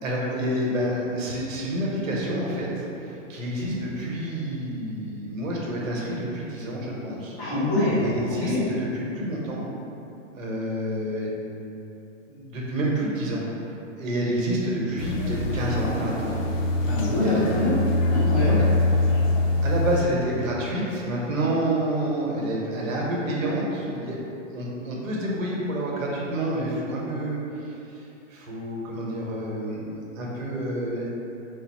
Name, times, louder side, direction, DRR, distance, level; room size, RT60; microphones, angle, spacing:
voice 1, 0.0-7.4 8.0-9.6 10.3-11.4 12.3-13.4 13.9-16.4 17.1-17.7 18.4-18.7 19.6-31.0, right 1 dB, 85° right, -4 dB, 1.1 m, -28 dB
voice 2, 7.4-8.0 8.5-8.6 16.8-17.7 18.1-18.6, left 2 dB, 5° right, -24 dB, 0.6 m, -24 dB
sound 1, 15.0-20.0, left 2 dB, 80° left, 0.6 m, -24 dB
3.9 x 2.0 x 4.0 m, 2.9 s
hypercardioid pair, 180°, 39 cm